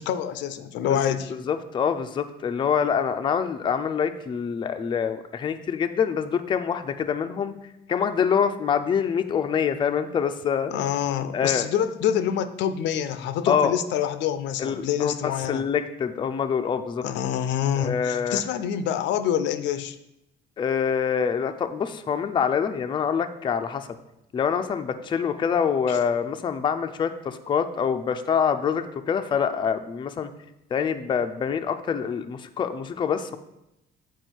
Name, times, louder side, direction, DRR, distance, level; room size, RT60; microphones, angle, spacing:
voice 1, 0.0-1.3 10.7-15.6 17.0-20.0 25.9-26.0, left 9 dB, 90° left, 12 dB, 0.5 m, -26 dB
voice 2, 1.3-7.5 7.9-10.7 11.3-11.7 13.5-13.8 14.6-17.0 17.8-18.4 20.6-23.9 24.3-30.3 30.7-33.4, left 7 dB, 25° left, 7 dB, 0.4 m, -25 dB
8.0 x 4.7 x 4.5 m, 0.89 s
cardioid pair, 155°, 18 cm